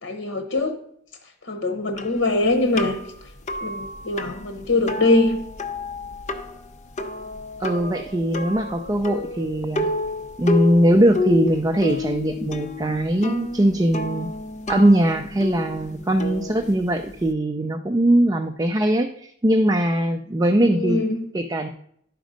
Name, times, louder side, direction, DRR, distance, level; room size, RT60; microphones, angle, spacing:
voice 1, 0.0-0.8 1.5-3.0 3.6-5.4 20.7-21.2, left 2 dB, 85° left, 6 dB, 0.9 m, -22 dB
sound 1, 2.0-17.3, left 3 dB, 40° left, 0.8 m, -30 dB
voice 2, 7.6-9.9 10.4-14.3 14.7-21.0 21.3-21.7, right 1 dB, 20° right, 6 dB, 0.5 m, -20 dB
11.5 x 5.1 x 5.1 m, 0.69 s
head